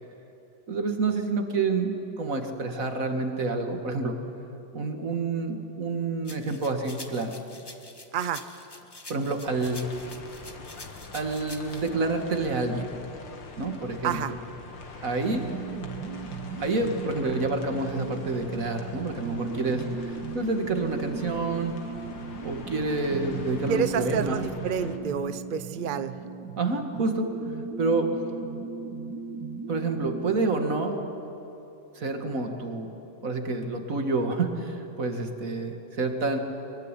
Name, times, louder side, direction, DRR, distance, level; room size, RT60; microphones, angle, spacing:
voice 1, 0.7-4.1 4.7-7.3 9.1-9.8 11.1-12.9 13.6-14.4 15.0-15.5 16.3-21.8 22.4-24.4 26.6-27.3 27.8-28.1 29.7-31.0 32.0-32.9 33.2-36.4, right 3 dB, 45° right, 5 dB, 2.3 m, -28 dB
sound 1, 6.3-11.9, left 2 dB, 15° left, 1.2 m, -46 dB
voice 2, 8.1-8.4 14.0-14.3 23.7-26.1, right 7 dB, 80° right, 12 dB, 0.4 m, -28 dB
sound 2, 9.5-25.0, left 4 dB, 75° left, 2.6 m, -44 dB
sound 3, 15.3-30.8, right 5 dB, 65° right, 1.7 m, -37 dB
22.5 x 22.5 x 10.0 m, 2.9 s
omnidirectional pair, 2.0 m